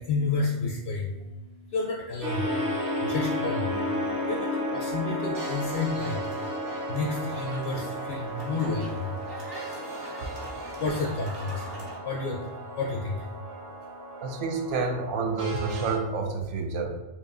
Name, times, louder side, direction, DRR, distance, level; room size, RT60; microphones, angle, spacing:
voice 1, 0.0-14.2, left 3 dB, 65° left, -2 dB, 0.7 m, -32 dB
sound 1, 2.2-16.0, equal, 30° right, 0.4 m, -33 dB
sound 2, 6.2-12.0, right 1 dB, 55° right, 1.0 m, -44 dB
voice 2, 14.2-16.9, right 4 dB, 90° right, 3 dB, 0.9 m, -29 dB
4.5 x 2.6 x 2.4 m, 1.0 s
omnidirectional pair, 1.2 m